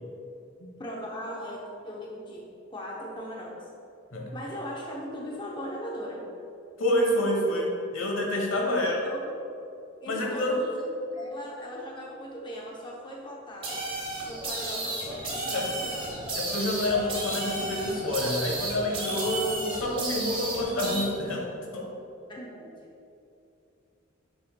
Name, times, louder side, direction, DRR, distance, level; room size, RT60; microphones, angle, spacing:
voice 1, 0.8-3.7 4.3-6.2 8.7-9.3 10.0-13.9 14.3-16.1 22.3-22.7, equal, 25° left, -2 dB, 0.7 m, -39 dB
voice 2, 6.8-9.0 10.1-10.6 15.5-15.7 16.4-21.5 21.7-21.9, left 1 dB, 75° left, 0 dB, 1.1 m, -28 dB
sound 1, 13.6-21.0, right 2 dB, 25° right, 1.2 m, -33 dB
7.6 x 6.5 x 2.2 m, 2.6 s
head